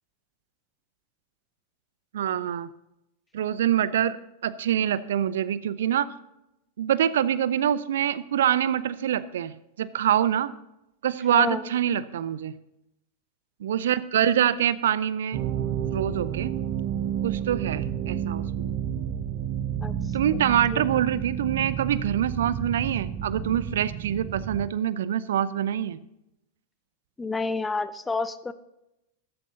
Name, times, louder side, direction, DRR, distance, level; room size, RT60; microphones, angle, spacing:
voice 1, 2.1-2.7 3.3-4.2 4.4-6.1 6.8-9.5 9.8-10.5 11.0-12.5 13.6-15.4 15.9-16.5 17.2-18.7 20.1-26.0, right 10 dB, 60° right, 17 dB, 0.5 m, -25 dB
voice 2, 11.3-11.6 19.8-19.9 20.7-20.8 27.2-28.5, left 3 dB, 10° left, 14 dB, 0.7 m, -29 dB
sound 1, 15.3-24.7, right 9 dB, 40° right, 0.9 m, -30 dB
14.0 x 13.5 x 2.8 m, 0.87 s
figure-of-eight pair, 90°, 0 cm